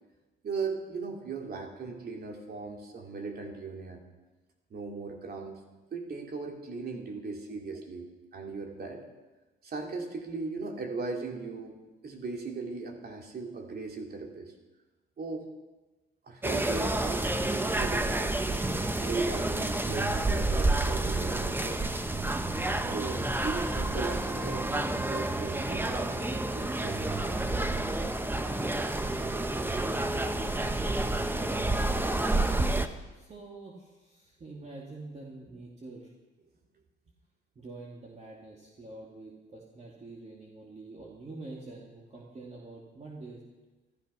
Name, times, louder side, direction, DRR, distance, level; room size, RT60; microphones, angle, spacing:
voice 1, 0.4-4.0 4.7-5.6 5.9-9.0 9.6-14.5 15.2-15.5 16.2-17.3 17.5-18.4 19.0-22.0 22.8-27.5, right 4 dB, 50° right, 2 dB, 2.9 m, -38 dB
sound 1, 16.4-32.9, right 2 dB, 10° right, 0.9 m, -29 dB
voice 2, 29.9-30.3 33.1-36.1 37.5-43.4, right 2 dB, 35° right, -3 dB, 2.6 m, -46 dB
14.0 x 13.0 x 5.7 m, 1.1 s
cardioid pair, 90°, 20 cm